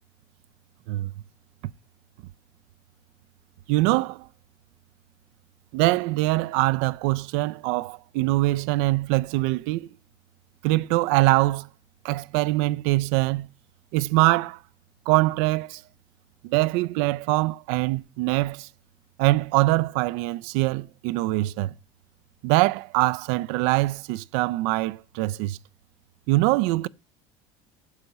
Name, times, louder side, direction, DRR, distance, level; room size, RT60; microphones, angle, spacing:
voice 1, 3.7-4.3 5.7-9.9 10.6-11.7 12.0-13.5 13.9-14.6 15.1-15.8 16.4-18.7 19.2-21.7 22.4-25.6 26.3-26.9, right 20 dB, 70° right, 0.4 m, -23 dB
8.0 x 6.8 x 4.1 m
cardioid pair, 160°, 12 cm